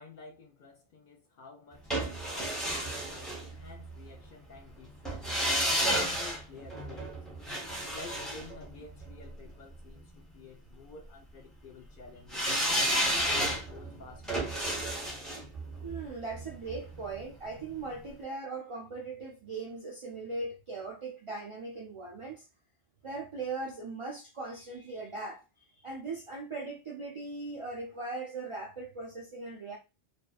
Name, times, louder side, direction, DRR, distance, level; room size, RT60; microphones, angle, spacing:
voice 1, 0.0-7.3 7.9-14.9, left 4 dB, 60° left, 0.7 m, -51 dB
sound 1, 1.9-4.0 5.1-9.3 12.3-17.3 17.6-17.7, equal, ahead, 0.5 m, -32 dB
voice 2, 15.8-22.5 23.0-25.4 25.8-29.8, right 3 dB, 55° right, 0.3 m, -39 dB
2.6 x 2.1 x 2.2 m
omnidirectional pair, 1.1 m